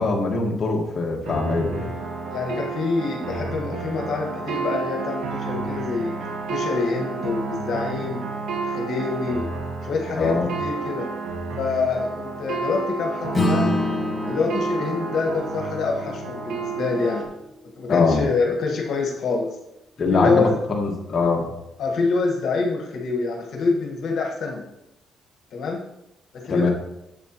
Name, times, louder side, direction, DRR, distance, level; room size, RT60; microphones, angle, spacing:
voice 1, 0.0-1.9 10.1-10.5 17.9-18.2 20.0-21.5 26.5-26.7, left 3 dB, 40° left, -1 dB, 1.7 m, -22 dB
sound 1, 1.3-17.3, right 4 dB, 75° right, 1.6 m, -31 dB
voice 2, 2.3-6.1 6.5-8.2 8.6-9.5 9.8-11.1 11.6-13.8 14.3-17.2 17.8-19.6 20.1-20.5 21.8-24.7 25.5-25.8 26.3-26.7, left 4 dB, 65° left, 0 dB, 1.6 m, -26 dB
Acoustic guitar / Strum, 13.3-18.1, left 1 dB, 25° left, 2.5 m, -28 dB
9.0 x 7.8 x 3.0 m, 0.87 s
cardioid pair, 90°, 0 cm